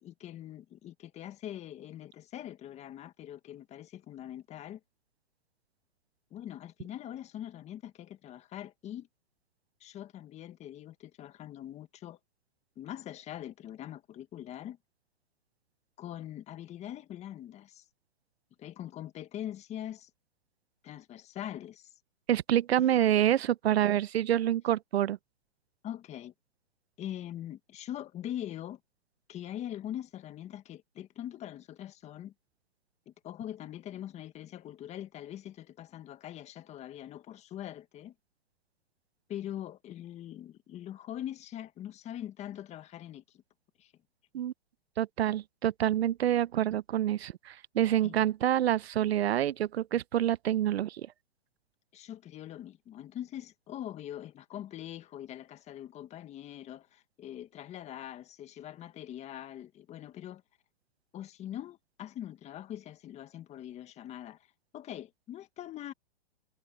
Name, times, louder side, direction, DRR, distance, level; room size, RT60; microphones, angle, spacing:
voice 1, 0.0-4.8 6.3-9.1 9.8-12.2 12.7-14.8 16.0-17.8 18.6-20.1 20.8-21.9 22.9-23.1 25.8-26.3 27.0-28.8 29.3-32.3 33.0-38.1 39.3-43.2 43.8-43.9 48.0-48.3 51.9-60.4 61.1-64.4 64.7-65.9, left 11 dB, 20° left, 1.7 m, -42 dB
voice 2, 22.3-25.2 44.3-44.5 45.0-51.0, right 11 dB, 75° right, 0.8 m, -27 dB
hypercardioid pair, 140°, 32 cm